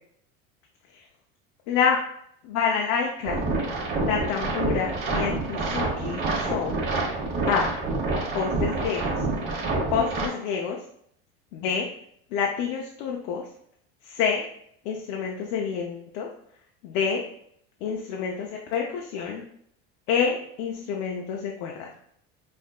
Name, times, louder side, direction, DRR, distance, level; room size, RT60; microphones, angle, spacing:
voice 1, 1.7-2.0 2.4-3.5 4.0-6.8 7.5-7.7 8.3-9.2 9.9-10.8 11.5-11.9 12.3-13.5 14.0-14.5 14.8-16.3 16.8-17.2 17.8-19.4 20.1-21.9, left 6 dB, 70° left, 0 dB, 0.7 m, -27 dB
sound 1, 3.3-10.3, right 3 dB, 40° right, 1.2 m, -27 dB
5.5 x 2.6 x 2.3 m, 0.68 s
supercardioid pair, 130°, 29 cm